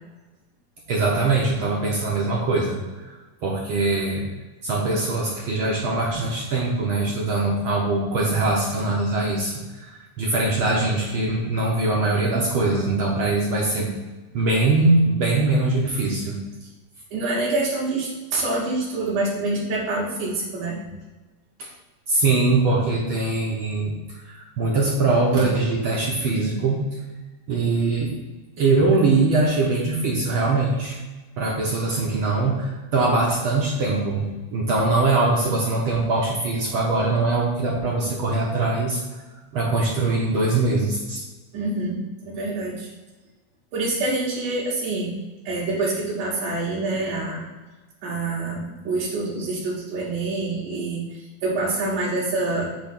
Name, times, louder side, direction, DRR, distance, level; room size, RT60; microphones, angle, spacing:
voice 1, 0.9-2.8 3.0-3.1 3.4-4.2 4.6-13.9 14.3-16.4 21.6-21.7 22.1-23.9 24.3-26.8 27.5-28.1 28.6-31.0 31.4-34.3 34.5-39.0 39.5-41.2, right 3 dB, 65° right, -2 dB, 1.3 m, -22 dB
voice 2, 17.1-20.8 41.5-42.9 43.7-45.2 45.4-47.4 48.0-52.7, right 2 dB, 85° right, -7 dB, 2.9 m, -26 dB
8.6 x 3.1 x 5.9 m, 1.2 s
omnidirectional pair, 3.5 m